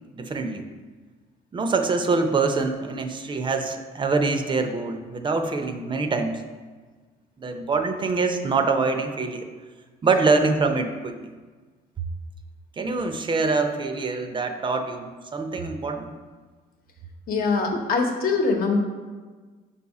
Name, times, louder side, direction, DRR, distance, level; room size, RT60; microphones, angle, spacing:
voice 1, 0.1-0.7 1.5-6.4 7.4-9.5 10.0-11.3 12.8-16.1, right 4 dB, 30° right, 6 dB, 0.5 m, -25 dB
voice 2, 17.3-18.8, left 4 dB, 60° left, 3 dB, 1.0 m, -23 dB
5.3 x 4.1 x 4.8 m, 1.4 s
cardioid pair, 110°, 17 cm